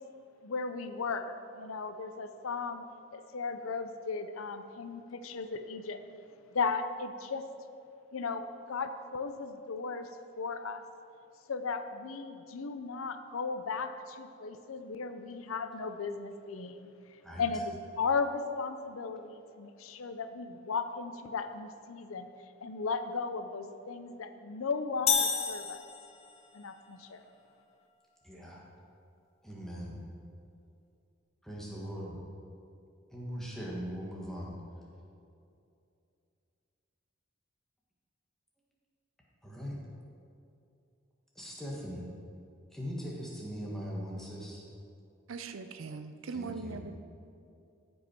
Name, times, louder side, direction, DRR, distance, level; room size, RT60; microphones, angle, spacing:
voice 1, 0.4-2.8 3.1-6.0 6.5-7.5 8.1-10.1 10.4-10.8 11.5-22.3 22.6-25.8 26.5-27.2, left 4 dB, 90° left, 9 dB, 0.6 m, -36 dB
sound 1, 25.1-26.5, left 6 dB, 30° left, 0.6 m, -30 dB
voice 2, 28.2-28.6 29.4-30.0 31.4-32.2 33.1-34.5 39.4-39.8 41.3-42.0 42.7-44.6 46.3-46.8, equal, ahead, -4 dB, 1.5 m, -40 dB
voice 3, 45.3-46.9, right 4 dB, 80° right, 8 dB, 0.6 m, -40 dB
14.5 x 5.5 x 4.4 m, 2.6 s
head